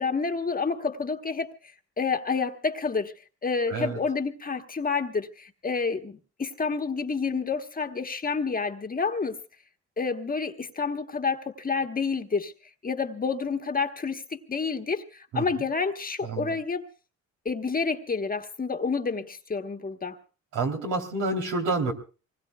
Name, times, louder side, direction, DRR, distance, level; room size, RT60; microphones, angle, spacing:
voice 1, 0.0-1.5 2.0-3.1 3.4-9.4 10.0-12.5 12.8-16.8 17.4-20.2, left 5 dB, 30° left, 1.2 m, -29 dB
voice 2, 3.7-4.0 15.3-15.4 16.2-16.5 20.5-21.9, right 3 dB, 90° right, 3.4 m, -28 dB
25.0 x 20.0 x 2.3 m
cardioid pair, 90°, 30 cm